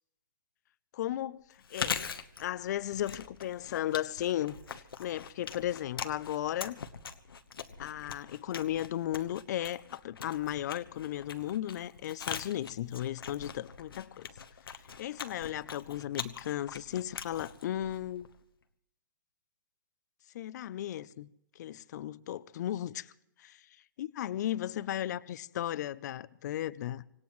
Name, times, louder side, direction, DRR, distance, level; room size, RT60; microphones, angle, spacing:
voice 1, 0.9-2.0 2.4-6.8 7.8-14.3 14.7-18.3 20.3-21.3 21.6-23.1 23.4-27.0, left 12 dB, 50° left, 0.5 m, -35 dB
Chewing mastication, 1.6-18.4, left 6 dB, 85° left, 1.1 m, -42 dB
25.0 x 18.0 x 3.1 m
hypercardioid pair, 145°, 12 cm